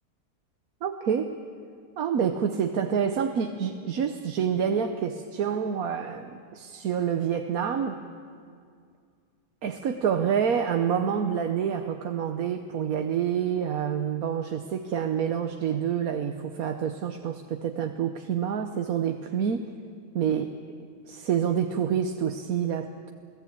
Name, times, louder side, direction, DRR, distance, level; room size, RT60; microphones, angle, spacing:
voice 1, 0.8-1.4 2.0-8.0 9.6-19.7 20.1-20.6 21.1-23.1, right 8 dB, 65° right, 6 dB, 1.4 m, -27 dB
29.0 x 17.5 x 8.7 m, 2.2 s
omnidirectional pair, 1.7 m